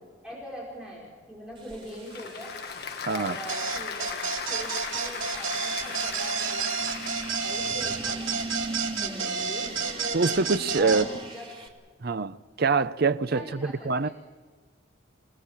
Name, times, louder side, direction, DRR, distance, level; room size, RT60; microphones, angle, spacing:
voice 1, 0.2-2.5 3.1-7.0 7.4-8.7 9.0-9.7 10.7-11.5 13.3-14.1, equal, 5° right, 5.0 m, -42 dB
Applause / Crowd, 1.5-8.0, left 6 dB, 50° left, 1.3 m, -38 dB
sound 1, 1.6-11.7, right 2 dB, 25° right, 2.8 m, -40 dB
sound 2, 3.5-11.1, right 5 dB, 80° right, 2.8 m, -30 dB
voice 2, 10.1-11.1 12.0-14.1, right 4 dB, 50° right, 0.6 m, -25 dB
28.0 x 18.5 x 7.4 m
head